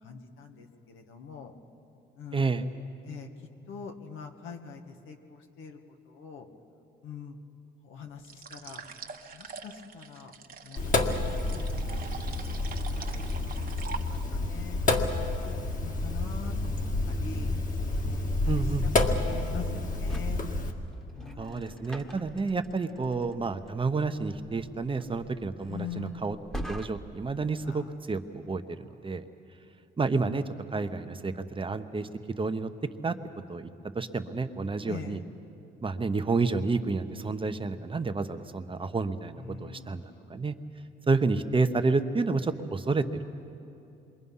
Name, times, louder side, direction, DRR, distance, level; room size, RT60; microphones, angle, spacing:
voice 1, 0.0-1.5 2.2-2.4 3.0-5.8 6.1-6.5 7.0-7.4 7.8-8.8 9.3-10.3 10.6-17.6 18.0-18.2 18.4-20.5 21.1-22.1 25.7-26.4 27.6-27.9 34.9-35.2 39.4-40.3, left 6 dB, 80° left, 4 dB, 1.9 m, -44 dB
voice 2, 2.3-2.6 18.5-18.9 21.4-26.4 26.7-29.2 30.0-30.4 30.7-32.1 32.4-32.7 33.0-33.1 33.5-33.7 33.9-35.2 35.8-40.5 41.1-43.2, right 4 dB, 25° right, 8 dB, 1.1 m, -30 dB
sound 1, 8.2-14.5, right 5 dB, 45° right, 1.4 m, -44 dB
Sink (filling or washing), 10.8-20.7, left 2 dB, 40° left, 2.0 m, -29 dB
sound 2, 19.2-27.3, equal, 5° left, 1.5 m, -43 dB
27.0 x 23.0 x 5.6 m, 2.8 s
cardioid pair, 90°, 20 cm